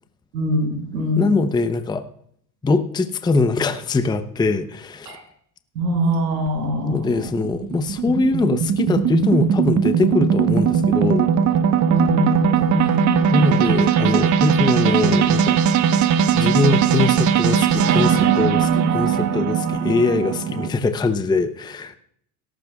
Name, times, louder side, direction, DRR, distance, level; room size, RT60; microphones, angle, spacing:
voice 1, 0.3-1.3 5.1-5.2 5.8-7.2 11.8-13.6, equal, 85° right, 1 dB, 5.9 m, -23 dB
voice 2, 1.2-2.1 2.6-5.1 6.8-11.3 13.3-15.6 16.3-22.0, left 3 dB, 10° left, 10 dB, 0.7 m, -22 dB
sound 1, 6.5-20.7, right 7 dB, 35° right, 1.1 m, -19 dB
17.5 x 14.0 x 2.4 m, 0.66 s
hypercardioid pair, 90°, 50 cm